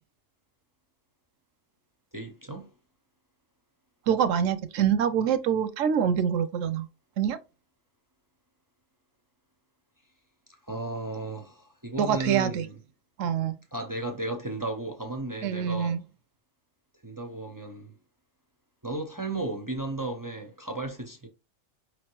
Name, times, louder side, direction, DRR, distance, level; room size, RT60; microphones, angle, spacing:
voice 1, 2.1-2.7 10.7-12.8 13.7-16.0 17.0-17.9 18.8-21.3, right 2 dB, 30° right, 0.3 m, -34 dB
voice 2, 4.1-6.9 7.2-7.4 12.0-12.7 13.2-13.5 15.4-16.0, right 8 dB, 85° right, 1.0 m, -25 dB
5.0 x 3.2 x 3.0 m
omnidirectional pair, 1.3 m